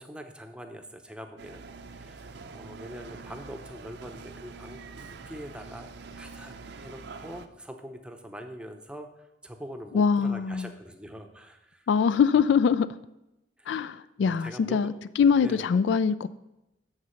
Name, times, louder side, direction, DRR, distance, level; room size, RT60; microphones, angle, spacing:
voice 1, 0.0-1.6 1.9-6.5 6.8-11.9 13.6-13.8 14.2-15.0 15.4-15.8, equal, 5° right, 0.7 m, -43 dB
sound 1, 1.4-7.5, right 4 dB, 60° right, 0.6 m, -45 dB
voice 2, 9.9-10.7 11.9-12.9 13.7-16.3, left 6 dB, 65° left, 0.3 m, -23 dB
8.0 x 6.7 x 5.6 m
head